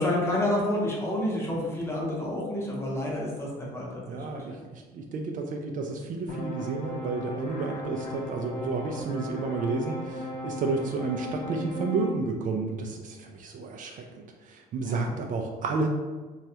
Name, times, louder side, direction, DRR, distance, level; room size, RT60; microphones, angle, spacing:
voice 1, 0.0-4.4 14.8-15.1, left 1 dB, 15° left, -4 dB, 0.8 m, -29 dB
voice 2, 4.1-15.9, right 4 dB, 50° right, 3 dB, 0.4 m, -31 dB
sound 1, 6.3-12.1, left 1 dB, 60° left, 0.7 m, -36 dB
3.1 x 2.3 x 2.8 m, 1.3 s
cardioid pair, 110°, 17 cm